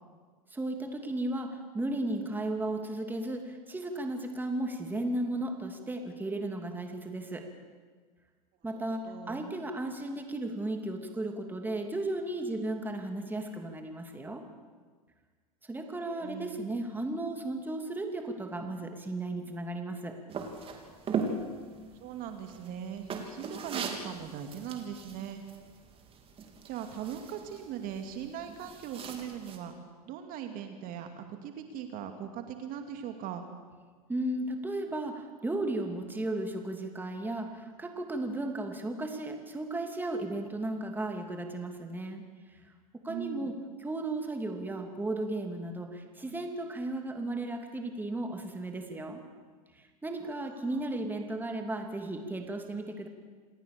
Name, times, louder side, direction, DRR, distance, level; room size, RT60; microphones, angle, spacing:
voice 1, 0.5-7.5 8.6-14.4 15.7-20.2 34.1-42.6 43.0-43.5 43.8-49.2 49.7-53.1, right 2 dB, 10° right, 4 dB, 2.9 m, -35 dB
voice 2, 8.7-9.5 15.8-16.8 22.0-25.4 26.7-29.7 30.1-33.5 43.1-43.5 50.5-50.8, right 9 dB, 45° right, 6 dB, 2.4 m, -40 dB
sound 1, 20.3-29.6, right 5 dB, 30° right, 3.6 m, -40 dB
27.5 x 18.0 x 6.9 m, 1.5 s
hypercardioid pair, 105°, 20 cm